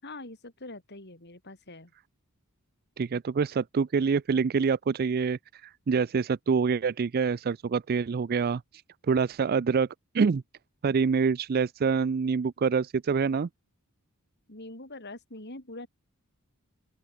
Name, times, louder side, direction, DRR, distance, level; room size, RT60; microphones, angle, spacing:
voice 1, 0.0-1.9 14.5-15.9, left 2 dB, 50° left, 5.6 m, -43 dB
voice 2, 3.0-8.6 9.1-9.9 10.1-10.4 10.8-13.5, right 5 dB, 45° right, 0.4 m, -26 dB
open air
head